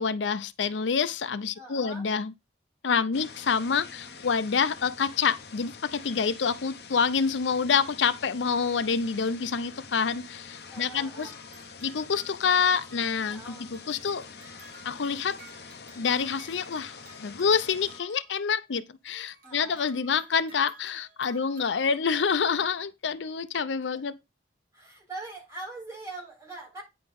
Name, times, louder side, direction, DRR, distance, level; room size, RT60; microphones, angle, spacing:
voice 1, 0.0-2.3 2.8-11.3 11.8-14.2 14.8-15.4 16.0-24.2, left 6 dB, 90° left, 0.6 m, -27 dB
voice 2, 1.6-2.1 3.8-4.2 10.7-11.3 13.3-13.7 19.4-19.8 21.3-21.5 23.9-24.0 24.7-26.8, right 2 dB, 15° right, 4.0 m, -43 dB
sound 1, 3.1-18.0, left 5 dB, 65° left, 0.9 m, -46 dB
sound 2, 10.5-18.7 19.0-22.4, right 4 dB, 45° right, 2.4 m, -55 dB
9.4 x 4.0 x 5.2 m
head